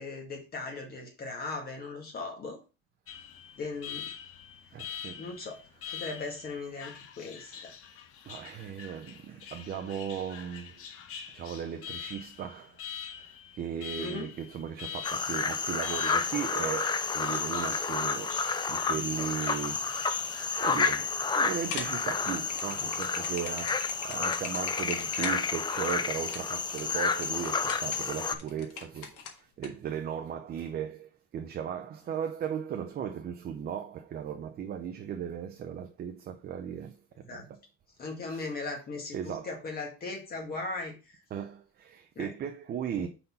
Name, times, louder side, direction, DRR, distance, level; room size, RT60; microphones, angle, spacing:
voice 1, 0.0-2.6 3.6-4.1 5.2-5.6 5.9-7.7 14.0-14.3 37.3-37.4 38.0-41.2 42.2-42.3 43.0-43.1, left 3 dB, 30° left, 1.9 m, -38 dB
Alarm, 3.1-20.9, left 8 dB, 45° left, 1.0 m, -45 dB
voice 2, 4.7-6.2 6.6-6.7 7.5-7.7 8.2-10.8 11.3-12.8 13.2-19.9 20.6-37.6 38.3-38.5 39.1-39.6 41.3-43.1, right 8 dB, 30° right, 0.6 m, -37 dB
sound 1, 15.0-28.3, left 5 dB, 15° left, 0.4 m, -30 dB
sound 2, 21.6-29.7, left 6 dB, 85° left, 1.7 m, -41 dB
5.5 x 4.2 x 5.6 m
cardioid pair, 150°, 31 cm